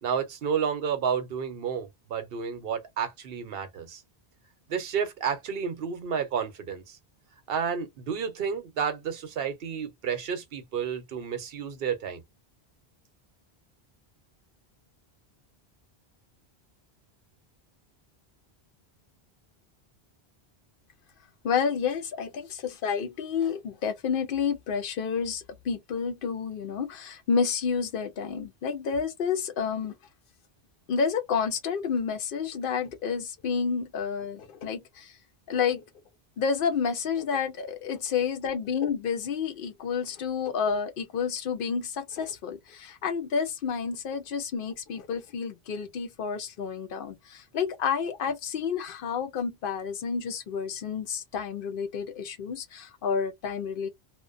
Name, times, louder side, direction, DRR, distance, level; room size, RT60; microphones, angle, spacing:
voice 1, 0.0-4.0 4.7-7.0 7.5-12.2, right 7 dB, 65° right, 0.9 m, -31 dB
voice 2, 21.4-29.9 30.9-35.1 35.5-35.8 36.4-53.9, left 6 dB, 65° left, 0.7 m, -30 dB
2.4 x 2.2 x 2.4 m
omnidirectional pair, 1.1 m